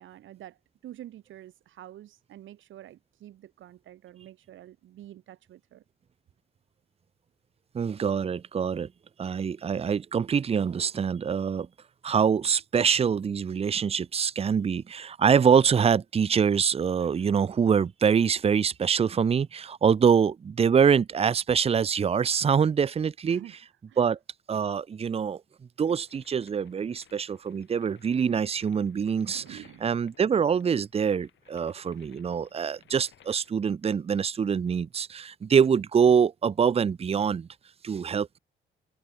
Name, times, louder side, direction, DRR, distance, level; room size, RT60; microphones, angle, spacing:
voice 1, 0.0-5.8 23.2-23.6 23.9-24.0 29.3-29.9, right 13 dB, 75° right, 2.6 m, -47 dB
voice 2, 7.7-8.9 9.2-11.7 12.0-23.4 24.0-24.2 24.5-25.4 25.8-37.5 37.8-38.4, right 7 dB, 30° right, 0.6 m, -24 dB
sound 1, 25.8-33.5, left 11 dB, 70° left, 5.0 m, -60 dB
cardioid pair, 90°, 20 cm